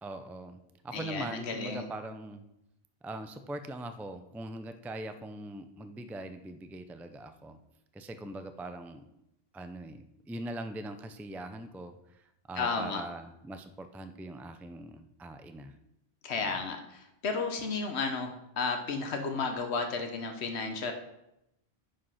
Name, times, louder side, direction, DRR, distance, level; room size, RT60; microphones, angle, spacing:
voice 1, 0.0-2.4 3.0-7.6 7.9-9.0 9.5-15.7 16.4-16.6, right 1 dB, 5° right, 9 dB, 0.4 m, -42 dB
voice 2, 0.9-1.9 12.6-13.0 16.2-20.9, left 4 dB, 85° left, 5 dB, 1.3 m, -33 dB
10.0 x 5.4 x 5.7 m, 0.85 s
omnidirectional pair, 1.1 m